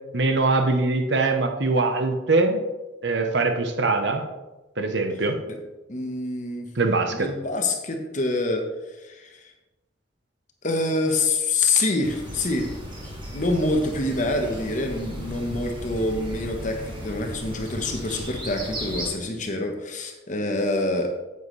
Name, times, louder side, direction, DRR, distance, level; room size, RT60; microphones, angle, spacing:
voice 1, 0.1-2.6 3.0-4.2 4.8-5.4 6.8-7.3, right 3 dB, 65° right, 5 dB, 0.9 m, -22 dB
voice 2, 5.9-6.7 7.1-8.6 8.9-9.5 10.6-12.7 13.3-21.1, left 2 dB, 40° left, 3 dB, 1.2 m, -26 dB
sound 1, 12.0-19.1, equal, 25° right, 1.7 m, -36 dB
9.1 x 8.4 x 3.3 m, 1.1 s
head